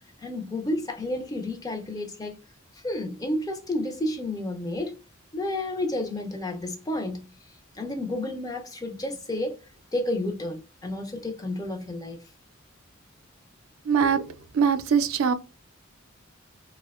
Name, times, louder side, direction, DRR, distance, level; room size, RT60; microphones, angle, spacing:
voice 1, 0.2-2.4 2.8-5.0 5.3-7.2 7.7-9.6 9.9-12.2, left 1 dB, 20° left, 0.4 m, -31 dB
voice 2, 13.9-15.3, right 6 dB, 90° right, 0.3 m, -23 dB
2.6 x 2.1 x 2.3 m
head